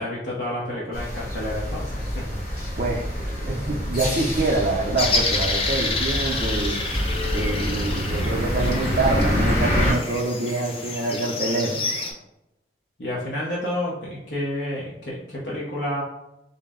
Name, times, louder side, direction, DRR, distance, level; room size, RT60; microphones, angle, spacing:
voice 1, 0.0-2.7 13.0-16.0, left 1 dB, 70° left, -6 dB, 0.7 m, -30 dB
sound 1, 0.9-9.9, equal, 45° left, 1.4 m, -26 dB
voice 2, 2.8-6.8 7.3-11.8, right 2 dB, 45° right, -4 dB, 0.4 m, -26 dB
sound 2, 5.0-12.1, left 3 dB, 30° left, 0.5 m, -29 dB
3.8 x 2.0 x 3.5 m, 0.90 s
head